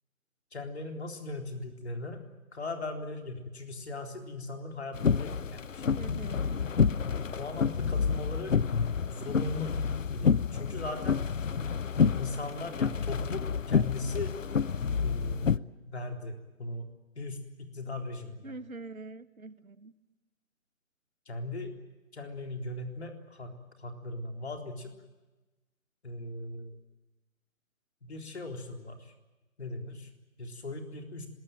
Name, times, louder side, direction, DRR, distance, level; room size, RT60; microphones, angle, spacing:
voice 1, 0.5-2.2 2.5-5.9 7.1-8.6 9.1-9.8 10.1-11.2 12.1-14.4 15.0-16.9 17.2-18.5 21.3-21.7 22.1-24.9 26.0-26.8 28.0-29.1 29.6-30.1 30.4-31.3, left 2 dB, 50° left, 5 dB, 3.9 m, -39 dB
sound 1, 4.9-15.6, left 6 dB, 70° left, 0.8 m, -29 dB
voice 2, 5.9-6.6 18.4-19.9, right 3 dB, 85° right, 13 dB, 1.8 m, -44 dB
24.0 x 21.0 x 9.1 m, 1.1 s
figure-of-eight pair, 165°, 41 cm